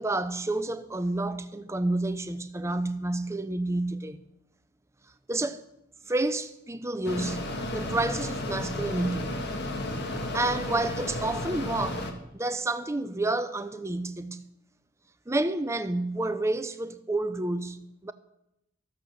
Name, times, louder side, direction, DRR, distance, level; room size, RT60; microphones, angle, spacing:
voice 1, 0.0-4.2 5.3-5.6 6.1-9.4 10.3-12.1 12.3-14.4 15.3-18.1, right 2 dB, 15° right, 0.6 m, -29 dB
Mechanisms, 7.0-12.1, left 1 dB, 55° left, 1.5 m, -33 dB
13.0 x 8.5 x 6.5 m
head